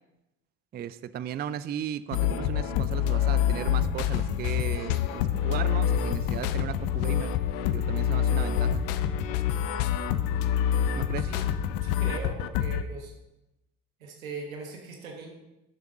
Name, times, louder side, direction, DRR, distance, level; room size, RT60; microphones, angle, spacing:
voice 1, 0.7-7.3 7.7-8.8 11.0-11.3, right 10 dB, 25° right, 15 dB, 0.4 m, -36 dB
sound 1, 2.1-12.8, left 9 dB, 65° left, 0.7 m, -26 dB
voice 2, 11.1-11.5 11.8-13.1 14.0-15.4, right 4 dB, 85° right, 1 dB, 1.3 m, -40 dB
11.5 x 7.0 x 3.7 m, 0.93 s
hypercardioid pair, 55°, 40 cm